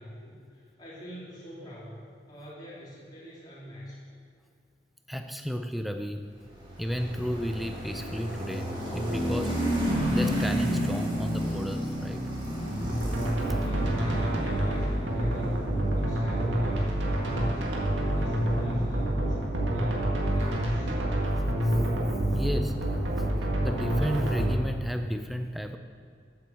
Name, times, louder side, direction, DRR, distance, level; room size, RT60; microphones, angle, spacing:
voice 1, 0.0-4.0 13.5-17.6 18.0-20.9, equal, 25° left, -9 dB, 3.1 m, -44 dB
voice 2, 5.1-6.3 6.8-9.6 10.1-12.3 13.5-13.6 22.3-25.8, equal, ahead, 6 dB, 0.5 m, -33 dB
sound 1, 6.5-19.6, equal, 25° right, 3.1 m, -32 dB
sound 2, 12.8-24.6, right 1 dB, 85° right, 1.8 m, -27 dB
8.3 x 8.1 x 7.1 m, 2.4 s
head